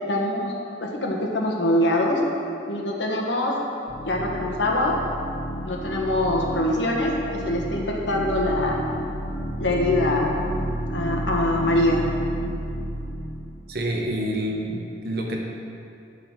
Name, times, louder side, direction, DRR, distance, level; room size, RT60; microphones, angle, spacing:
voice 1, 0.1-0.5 0.8-2.2 2.7-3.6 4.0-5.0 5.6-8.8 9.6-10.4 10.9-12.1, left 1 dB, 80° left, -1 dB, 1.3 m, -23 dB
sound 1, 3.9-13.7, right 1 dB, 30° left, 1.0 m, -31 dB
voice 2, 13.7-15.4, right 1 dB, 60° right, -1 dB, 0.9 m, -27 dB
11.5 x 4.0 x 6.1 m, 2.6 s
head